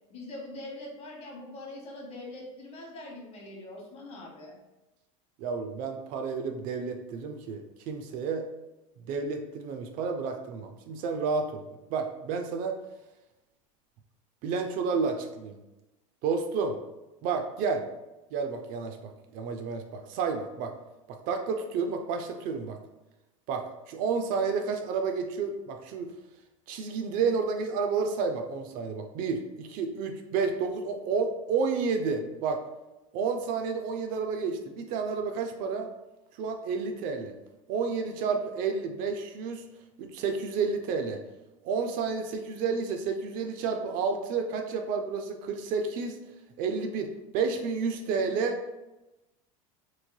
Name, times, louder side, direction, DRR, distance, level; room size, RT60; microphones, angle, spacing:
voice 1, 0.1-4.6, left 1 dB, 35° left, -1 dB, 1.1 m, -43 dB
voice 2, 5.4-8.5 9.1-11.6 11.9-12.7 14.4-15.6 16.2-16.8 17.2-17.8 18.3-20.7 21.1-22.8 23.5-26.1 26.7-32.6 33.1-35.9 36.4-37.4 37.7-39.6 40.0-41.2 41.6-46.2 46.6-48.6, right 5 dB, 50° right, 5 dB, 0.4 m, -30 dB
3.6 x 3.2 x 2.2 m, 1.0 s
supercardioid pair, 115°, 18 cm